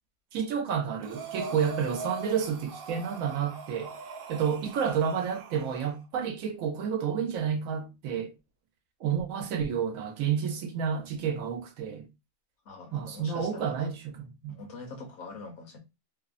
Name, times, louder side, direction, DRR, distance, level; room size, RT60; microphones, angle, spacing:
voice 1, 0.3-3.9 4.3-8.3 9.0-12.1 12.9-14.6, right 7 dB, 90° right, 1.1 m, -30 dB
Breathing, 1.0-6.0, right 3 dB, 60° right, 0.6 m, -41 dB
voice 2, 12.7-13.9 14.5-15.8, left 3 dB, 65° left, 0.9 m, -44 dB
2.9 x 2.0 x 2.4 m
omnidirectional pair, 1.4 m